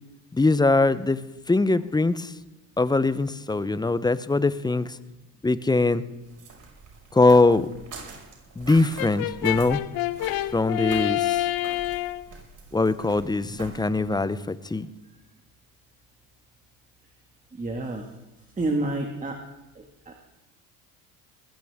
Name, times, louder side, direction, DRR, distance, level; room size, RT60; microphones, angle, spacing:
voice 1, 0.3-1.2 1.5-2.3 2.8-4.9 5.4-6.0 7.1-7.7 8.6-9.8 10.5-11.4 12.7-14.9, left 3 dB, 10° left, 15 dB, 0.7 m, -22 dB
sound 1, 6.2-14.1, right 4 dB, 50° right, 5.9 m, -44 dB
Brass instrument, 9.0-12.3, left 15 dB, 65° left, 0.8 m, -27 dB
voice 2, 17.5-18.0 18.6-19.4 19.8-20.2, right 2 dB, 20° right, 3 dB, 1.9 m, -29 dB
20.5 x 15.5 x 3.6 m, 0.98 s
supercardioid pair, 80°, 40 cm